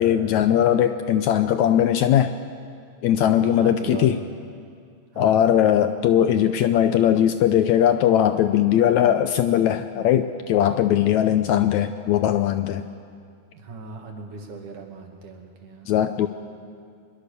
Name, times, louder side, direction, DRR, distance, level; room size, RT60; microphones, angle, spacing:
voice 1, 0.0-2.3 3.0-4.2 5.2-12.9 15.9-16.3, left 10 dB, 75° left, 10 dB, 1.8 m, -19 dB
voice 2, 3.3-4.1 5.1-5.6 13.5-15.9, right 4 dB, 70° right, 2 dB, 3.7 m, -39 dB
24.0 x 22.0 x 6.8 m, 2.3 s
omnidirectional pair, 3.8 m